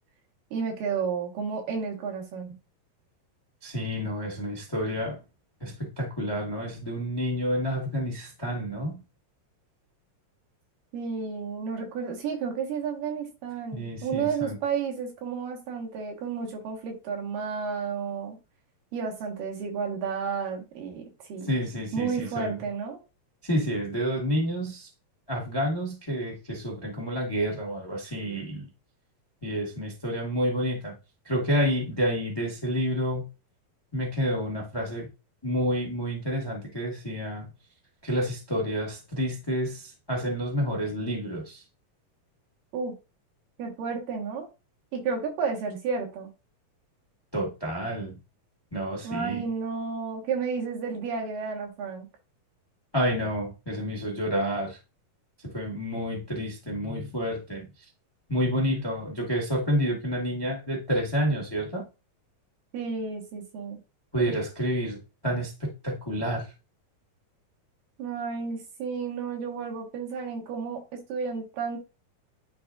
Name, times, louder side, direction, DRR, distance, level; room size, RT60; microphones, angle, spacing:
voice 1, 0.5-2.5 10.9-18.4 18.9-21.5 21.9-23.0 42.7-42.9 43.6-44.5 44.9-46.3 49.0-52.1 62.7-63.8 64.2-64.3 68.0-71.8, right 5 dB, 90° right, 3.2 m, -32 dB
voice 2, 3.6-5.2 5.6-9.0 13.7-14.6 21.5-22.6 23.4-24.9 25.3-28.7 29.4-30.9 31.2-33.2 33.9-35.1 35.4-37.5 38.0-41.6 47.3-48.2 48.7-49.4 52.9-54.8 55.5-57.7 58.3-61.8 64.1-65.0 65.2-66.5, equal, 25° left, 0.5 m, -29 dB
10.5 x 3.6 x 2.6 m
omnidirectional pair, 3.8 m